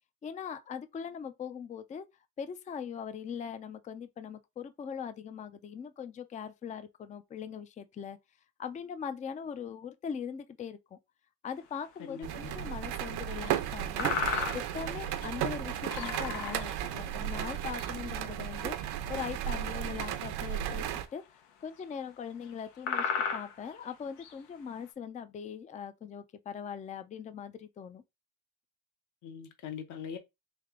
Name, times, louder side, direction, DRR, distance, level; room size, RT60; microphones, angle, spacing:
voice 1, 0.2-2.1 2.4-8.2 8.6-11.0 11.4-14.1 14.5-20.8 21.1-21.2 21.6-28.0, left 7 dB, 20° left, 0.3 m, -41 dB
sound 1, 11.9-12.0 12.5-12.6 13.5-13.6 14.0-14.9 15.2-15.4 15.9-16.9 17.5-17.9 18.6-18.9 20.2-20.3 20.9-21.0 21.8-21.9 22.5-22.6 22.8-24.3, left 6 dB, 85° left, 1.0 m, -34 dB
voice 2, 12.0-12.7 29.2-30.2, left 7 dB, 50° left, 0.8 m, -42 dB
sound 2, 12.2-21.1, right 11 dB, 70° right, 0.7 m, -34 dB
3.4 x 3.3 x 3.6 m
cardioid pair, 120°, 41 cm